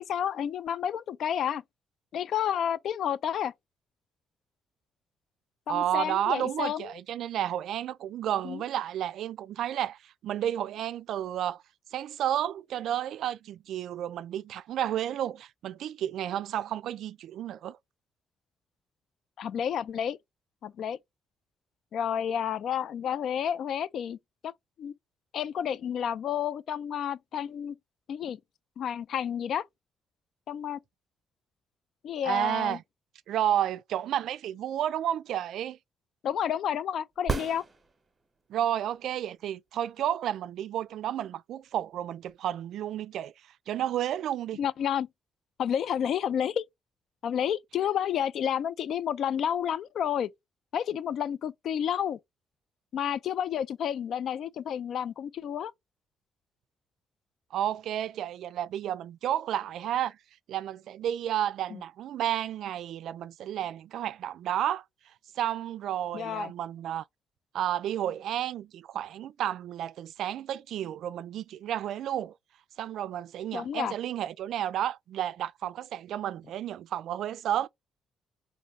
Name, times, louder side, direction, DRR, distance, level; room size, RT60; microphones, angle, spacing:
voice 1, 0.0-1.6 2.1-3.5 5.7-6.9 8.4-8.6 19.4-20.2 20.6-21.0 21.9-24.2 24.4-24.5 24.8-24.9 25.3-27.8 28.1-28.4 28.8-29.7 30.5-30.8 32.0-32.8 36.2-37.6 44.6-45.1 45.6-46.6 47.2-50.3 50.7-52.2 52.9-55.7 61.7-61.8 66.1-66.5 73.5-73.9, left 9 dB, 65° left, 0.3 m, -30 dB
voice 2, 5.7-11.6 11.9-17.8 32.2-32.8 33.3-35.8 38.5-43.3 43.7-44.6 57.5-60.2 60.5-64.8 65.4-67.0 67.5-72.3 72.8-77.7, right 11 dB, 75° right, 0.3 m, -31 dB
sound 1, 37.2-38.4 42.3-42.4, right 4 dB, 25° right, 1.0 m, -33 dB
3.8 x 2.6 x 3.2 m
cardioid pair, 135°, 0 cm